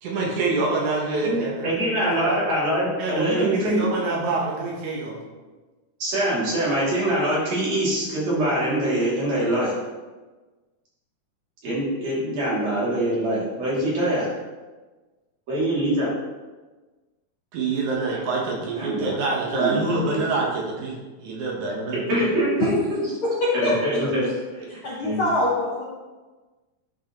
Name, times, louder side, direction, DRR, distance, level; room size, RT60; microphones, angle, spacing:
voice 1, 0.0-1.7 2.0-2.4 3.0-5.2 17.5-22.2, right 3 dB, 70° right, -2 dB, 2.4 m, -26 dB
voice 2, 1.1-3.8 6.0-9.7 11.6-14.3 15.5-16.1 18.8-19.2 19.4-20.3 22.1-23.0 23.5-24.3 24.5-24.7 25.0-25.3, right 1 dB, 55° right, -8 dB, 3.8 m, -24 dB
voice 3, 23.2-23.7 24.7-25.8, left 2 dB, 60° left, -6 dB, 1.4 m, -24 dB
11.0 x 5.5 x 3.0 m, 1.3 s
omnidirectional pair, 3.7 m